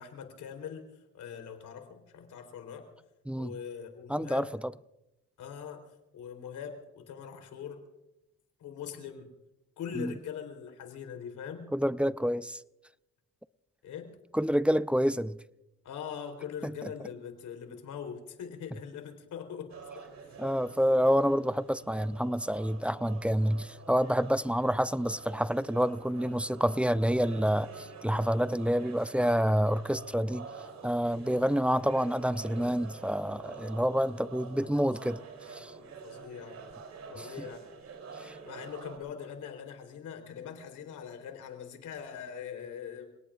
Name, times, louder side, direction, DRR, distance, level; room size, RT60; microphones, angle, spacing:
voice 1, 0.0-2.9 3.3-4.6 5.4-5.8 6.1-7.8 8.6-9.3 9.8-11.8 13.8-14.2 15.8-20.4 31.3-31.7 34.2-35.3 35.6-36.6 37.1-37.7 38.2-43.1, left 7 dB, 80° left, 3.9 m, -42 dB
voice 2, 4.1-4.4 10.0-10.1 11.7-12.6 14.3-15.4 16.6-16.7 20.4-30.5 30.8-35.2 35.5-35.7 37.2-37.3 38.2-38.3, equal, 5° right, 0.4 m, -28 dB
sound 1, 19.7-39.0, right 5 dB, 60° right, 3.5 m, -47 dB
29.5 x 18.5 x 2.5 m
cardioid pair, 90°, 30 cm